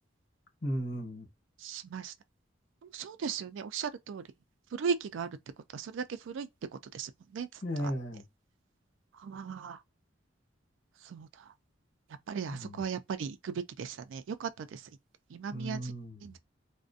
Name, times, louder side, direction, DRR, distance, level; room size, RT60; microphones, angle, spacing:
voice 1, 0.6-1.3 7.6-8.3 12.5-12.8 15.5-16.2, equal, 65° left, 1.0 m, -35 dB
voice 2, 1.6-2.1 2.8-4.2 4.7-5.4 5.7-6.5 6.9-7.9 9.2-9.8 11.0-11.3 12.3-14.8 15.3-15.9 16.2-16.4, right 6 dB, 90° right, 0.3 m, -37 dB
2.4 x 2.1 x 2.5 m
head